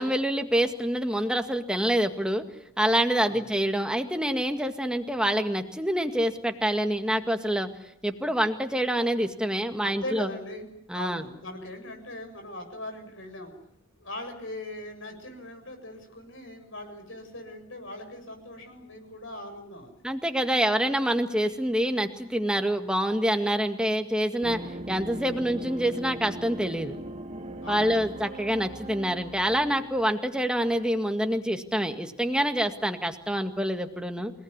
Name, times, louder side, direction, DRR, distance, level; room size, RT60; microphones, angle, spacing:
voice 1, 0.0-2.4 2.8-7.7 8.0-10.3 10.9-11.2 20.0-24.6 24.9-27.0 27.7-34.3, equal, 5° right, 6 dB, 1.9 m, -26 dB
voice 2, 9.8-13.5 14.0-19.9 27.6-27.9, left 1 dB, 70° left, 5 dB, 7.4 m, -40 dB
sound 1, 24.4-30.2, right 1 dB, 30° right, 1.6 m, -39 dB
29.5 x 18.5 x 9.8 m, 0.74 s
head